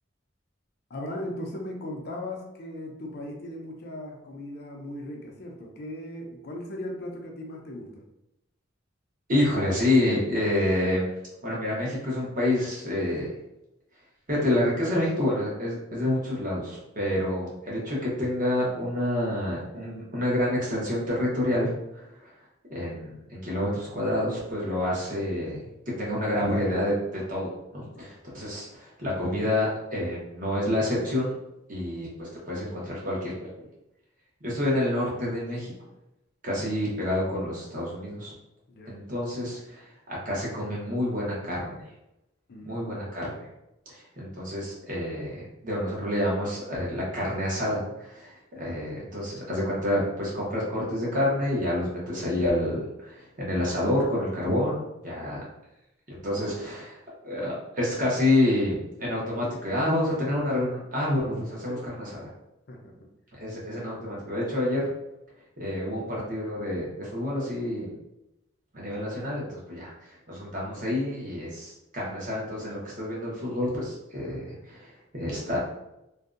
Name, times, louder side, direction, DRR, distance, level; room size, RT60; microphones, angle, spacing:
voice 1, 0.9-8.0 27.9-28.1 38.7-39.0 42.5-43.2 48.6-48.8 55.1-55.4 61.7-61.9 62.7-62.9, left 1 dB, 55° left, 1 dB, 0.5 m, -38 dB
voice 2, 9.3-11.1 11.4-13.3 14.3-22.3 22.7-25.6 26.0-31.4 31.7-33.5 34.4-35.7 36.4-38.3 38.9-39.8 40.1-41.8 42.6-43.4 43.9-55.4 56.1-57.0 57.2-62.1 63.4-64.9 65.6-67.9 68.7-75.6, left 1 dB, 45° right, -5 dB, 0.9 m, -28 dB
2.6 x 2.2 x 2.4 m, 0.89 s
head